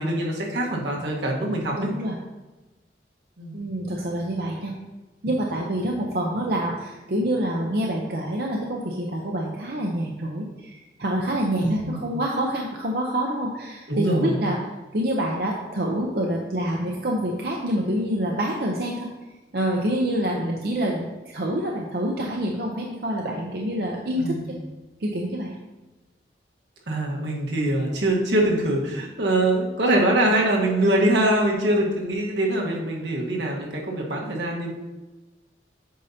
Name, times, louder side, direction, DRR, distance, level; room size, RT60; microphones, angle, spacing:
voice 1, 0.0-1.9 3.4-3.6 11.6-12.0 13.9-14.3 24.2-24.5 26.9-34.7, right 1 dB, 85° right, -2 dB, 1.4 m, -23 dB
voice 2, 1.8-2.2 3.5-4.7 5.2-14.6 14.9-19.1 19.5-24.6 25.0-25.6, right 1 dB, 60° right, -1 dB, 0.7 m, -26 dB
8.4 x 5.5 x 2.8 m, 1.1 s
head